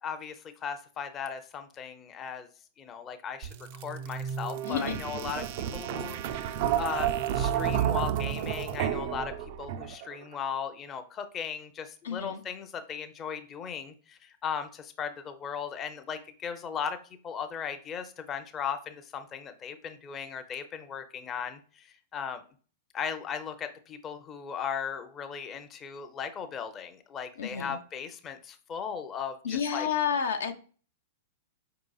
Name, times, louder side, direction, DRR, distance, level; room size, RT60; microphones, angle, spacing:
voice 1, 0.0-2.5 2.8-5.5 5.7-17.0 17.2-22.4 22.9-29.9, left 7 dB, 30° left, 8 dB, 0.5 m, -37 dB
sound 1, 3.4-10.2, right 10 dB, 55° right, 0.3 m, -31 dB
voice 2, 4.7-5.0 12.0-12.4 27.4-27.8 29.4-30.5, left 7 dB, 75° left, 6 dB, 0.5 m, -30 dB
4.7 x 3.8 x 2.3 m, 0.39 s
hypercardioid pair, 105°, 0 cm